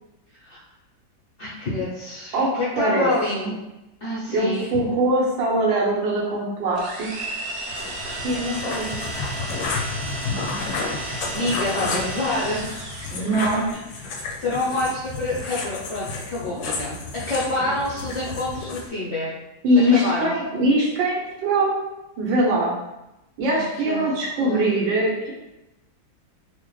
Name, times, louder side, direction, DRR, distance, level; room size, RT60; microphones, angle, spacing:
voice 1, 1.4-3.5 4.0-4.7 11.3-13.1 13.7-13.8 14.4-17.0 17.3-19.3 19.9-20.3 23.5-24.7, left 2 dB, 65° left, -7 dB, 0.7 m, -28 dB
voice 2, 2.3-3.1 3.4-3.5 4.3-7.4 8.2-9.0 11.7-11.9 13.1-13.6 19.6-21.7 22.2-22.8 23.4-25.3, right 1 dB, 75° right, -3 dB, 1.6 m, -22 dB
sound 1, 6.7-13.4, right 2 dB, 60° right, 1.1 m, -33 dB
sound 2, 7.7-18.9, left 4 dB, 85° left, 1.3 m, -31 dB
4.4 x 2.1 x 3.1 m, 0.94 s
omnidirectional pair, 2.1 m